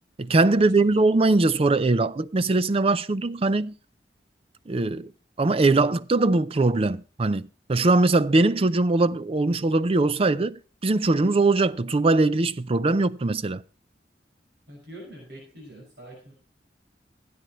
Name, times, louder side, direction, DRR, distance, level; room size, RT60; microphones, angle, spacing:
voice 1, 0.2-3.7 4.7-5.1 5.4-13.6, right 2 dB, 35° right, 0.5 m, -21 dB
voice 2, 14.7-16.3, right 1 dB, 65° right, 6.1 m, -44 dB
16.5 x 9.5 x 3.1 m
head